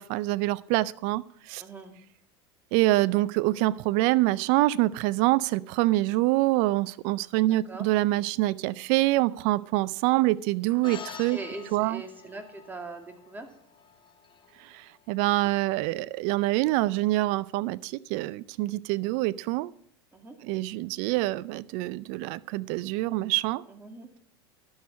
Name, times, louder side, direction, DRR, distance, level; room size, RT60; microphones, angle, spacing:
voice 1, 0.0-1.6 2.7-11.4 11.7-12.0 14.6-19.7 20.4-23.6, right 18 dB, 60° right, 18 dB, 0.4 m, -26 dB
voice 2, 1.6-2.0 7.5-7.8 11.3-13.5 20.1-20.4 23.7-24.1, right 2 dB, 15° right, 4 dB, 2.2 m, -41 dB
Inside piano contact mic coin scrape, 10.8-15.5, left 7 dB, 35° left, 1.4 m, -47 dB
12.0 x 6.4 x 7.1 m, 0.62 s
hypercardioid pair, 95°, 14 cm